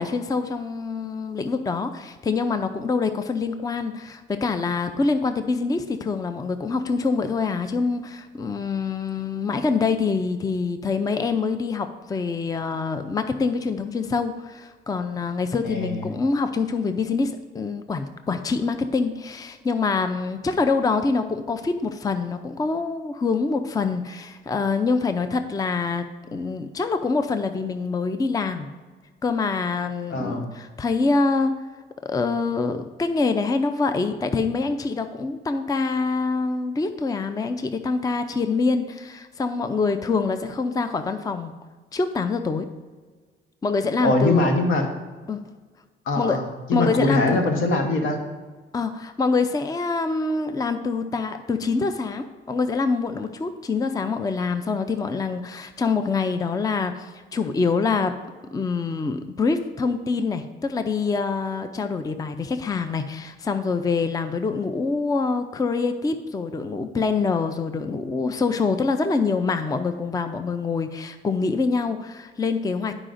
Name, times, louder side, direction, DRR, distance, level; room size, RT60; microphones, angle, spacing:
voice 1, 0.0-26.0 26.3-28.7 29.2-31.6 32.0-41.5 41.9-42.7 43.6-44.5 45.3-45.4 46.1-46.4 46.7-47.4 48.7-58.1 58.5-73.0, left 4 dB, 20° left, 8 dB, 0.4 m, -25 dB
voice 2, 15.6-16.1 30.1-30.5 44.0-44.8 46.1-48.2, left 2 dB, 80° left, 3 dB, 1.2 m, -22 dB
11.5 x 4.9 x 2.6 m, 1.4 s
cardioid pair, 90°, 20 cm